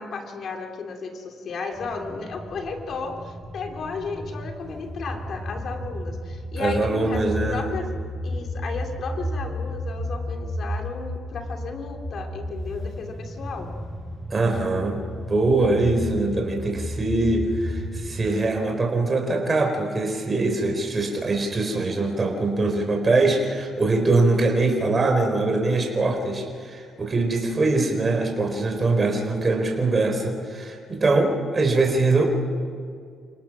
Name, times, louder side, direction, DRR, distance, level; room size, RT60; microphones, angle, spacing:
voice 1, 0.0-7.9 8.2-13.7, left 4 dB, 60° left, 3 dB, 2.8 m, -34 dB
sound 1, 1.7-18.3, equal, 5° left, 6.4 m, -33 dB
voice 2, 6.6-7.7 14.3-32.3, right 3 dB, 30° right, 2 dB, 4.3 m, -23 dB
29.0 x 18.0 x 6.2 m, 2.2 s
cardioid pair, 90°, 0 cm